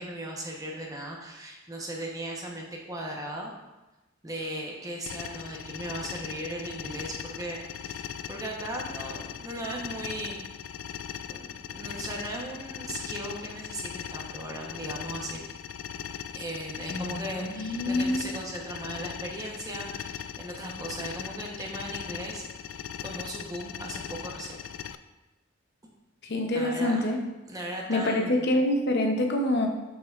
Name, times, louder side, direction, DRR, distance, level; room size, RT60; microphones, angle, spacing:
voice 1, 0.0-3.5 4.2-10.4 11.3-15.4 16.3-24.6 26.5-27.1 27.5-28.5, right 1 dB, 20° right, -1 dB, 0.9 m, -37 dB
sound 1, 5.1-24.9, left 8 dB, 80° left, 0.3 m, -39 dB
voice 2, 16.9-18.3 26.2-27.2 27.9-29.7, left 1 dB, 55° left, 3 dB, 0.7 m, -26 dB
7.4 x 5.8 x 2.4 m, 1.1 s
head